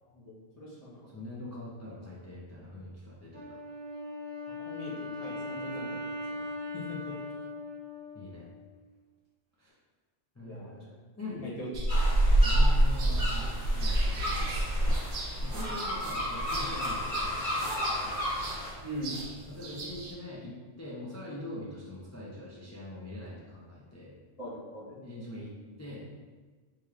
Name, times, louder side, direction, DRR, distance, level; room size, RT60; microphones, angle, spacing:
voice 1, 0.0-1.0 4.6-6.0 6.3-6.4 6.7-7.1 10.4-10.8 11.4-11.7 12.3-12.5 18.8-19.2 24.4-25.0, equal, 35° left, -7 dB, 1.1 m, -41 dB
voice 2, 1.1-3.4 8.1-8.5 9.6-9.7 10.3-11.5 12.4-14.5 15.4-18.2 19.5-24.1 25.0-25.5 25.8-26.1, left 1 dB, 20° left, -6 dB, 0.4 m, -43 dB
Wind instrument woodwind instrument, 3.3-8.7, left 2 dB, 30° right, 1.0 m, -39 dB
sound 1, 11.7-20.1, right 1 dB, 70° right, 0.9 m, -28 dB
sound 2, 11.9-18.7, left 1 dB, 90° left, 1.6 m, -34 dB
4.7 x 3.0 x 2.4 m, 1.4 s
omnidirectional pair, 1.1 m